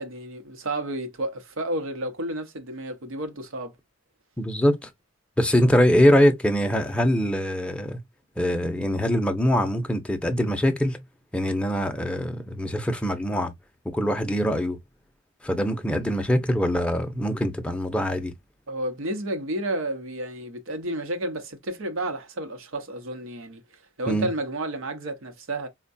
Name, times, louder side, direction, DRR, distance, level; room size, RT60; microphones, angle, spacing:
voice 1, 0.0-3.8 18.7-23.6 24.0-25.7, right 1 dB, 75° right, 0.8 m, -31 dB
voice 2, 4.4-4.9 5.4-8.0 8.4-11.0 11.3-13.5 13.9-14.8 15.4-18.3 24.1-24.3, equal, 5° left, 0.5 m, -23 dB
4.4 x 2.2 x 2.5 m
head